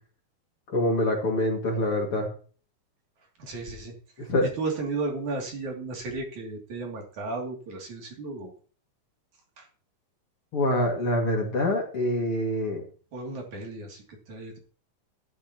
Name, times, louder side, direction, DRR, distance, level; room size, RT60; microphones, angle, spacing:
voice 1, 0.7-2.3 4.3-4.5 10.5-12.8, left 1 dB, 40° left, 0 dB, 3.0 m, -25 dB
voice 2, 3.4-8.5 9.6-9.7 13.1-14.6, right 3 dB, 55° right, 1 dB, 4.2 m, -34 dB
12.5 x 12.5 x 3.0 m, 0.40 s
omnidirectional pair, 4.1 m